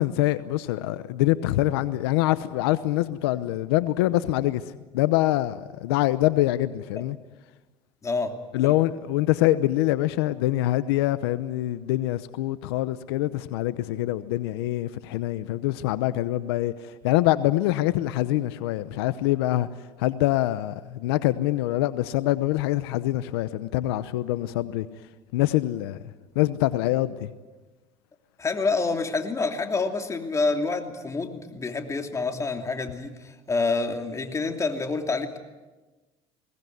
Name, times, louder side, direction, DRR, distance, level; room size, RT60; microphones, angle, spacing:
voice 1, 0.0-4.6 4.9-7.2 8.5-16.7 17.0-19.7 20.0-24.9 25.3-26.0 26.4-27.3, left 15 dB, 90° left, 0.9 m, -24 dB
voice 2, 8.0-8.3 8.6-8.7 28.4-35.4, left 3 dB, 25° left, 2.9 m, -27 dB
22.0 x 18.5 x 9.4 m
supercardioid pair, 100°, 13 cm